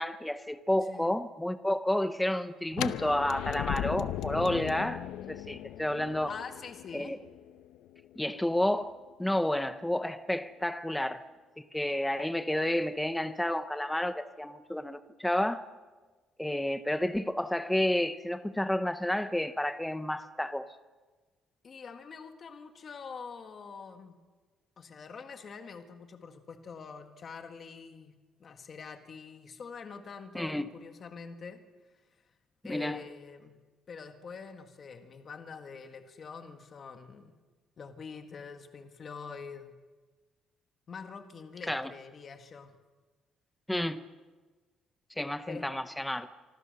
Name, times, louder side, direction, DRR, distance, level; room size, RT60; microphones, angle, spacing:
voice 1, 0.0-6.3 6.9-7.2 8.2-11.2 11.7-15.7 16.4-20.7 30.3-30.7 32.7-33.0 41.7-41.9 43.7-44.0 45.2-46.3, left 1 dB, 5° left, 0.7 m, -30 dB
sound 1, 2.7-8.6, left 12 dB, 85° left, 0.8 m, -37 dB
voice 2, 6.3-7.2 21.6-24.2 24.8-28.1 28.4-31.6 32.6-33.5 33.9-37.3 37.8-39.8 40.9-42.8 45.5-45.7, left 5 dB, 30° left, 1.8 m, -45 dB
25.5 x 25.0 x 6.7 m
cardioid pair, 180°, 0 cm